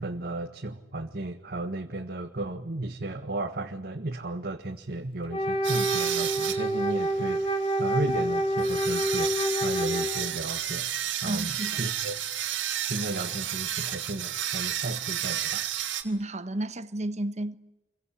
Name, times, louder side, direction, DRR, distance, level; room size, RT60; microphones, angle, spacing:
voice 1, 0.0-9.3 9.6-10.9 11.2-11.5 11.8-12.2 12.9-15.6, right 2 dB, 55° right, 1.7 m, -34 dB
Wind instrument woodwind instrument, 5.3-10.5, right 1 dB, 30° left, 2.1 m, -27 dB
sound 1, 5.6-16.0, right 11 dB, 80° right, 3.0 m, -32 dB
voice 2, 11.2-11.8 16.0-17.6, right 1 dB, 40° right, 1.3 m, -32 dB
28.5 x 23.5 x 8.5 m
head